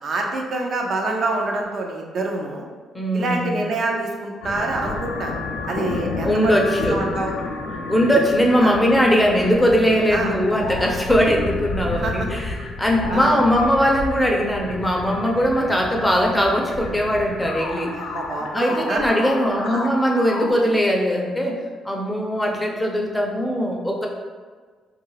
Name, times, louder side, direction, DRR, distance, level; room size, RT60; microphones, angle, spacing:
voice 1, 0.0-2.6 3.1-5.3 5.7-7.3 8.6-8.7 10.1-10.3 11.9-12.3 13.1-13.4 17.9-19.0 19.6-19.9, right 2 dB, 55° right, 1 dB, 0.5 m, -26 dB
voice 2, 2.9-3.6 6.2-7.1 7.9-17.9 18.5-21.5 21.8-24.1, equal, 10° left, -1 dB, 0.5 m, -20 dB
sound 1, 4.4-20.5, left 3 dB, 85° left, 0.3 m, -31 dB
2.3 x 2.3 x 3.1 m, 1.5 s
cardioid pair, 90°, 0 cm